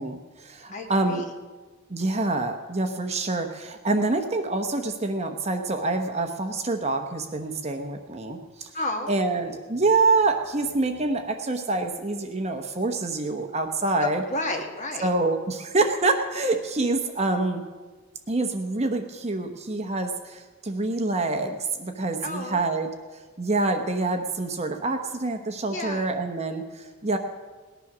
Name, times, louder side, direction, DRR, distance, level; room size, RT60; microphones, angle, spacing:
voice 1, 0.0-1.2 1.9-8.7 9.1-14.2 15.0-17.6 18.3-22.9 23.4-27.2, right 3 dB, 30° right, 5 dB, 0.9 m, -26 dB
voice 2, 0.7-1.3 8.7-9.1 14.0-15.1 22.2-22.7 25.7-26.1, left 2 dB, 35° left, 3 dB, 1.5 m, -31 dB
18.5 x 10.0 x 6.1 m, 1.3 s
head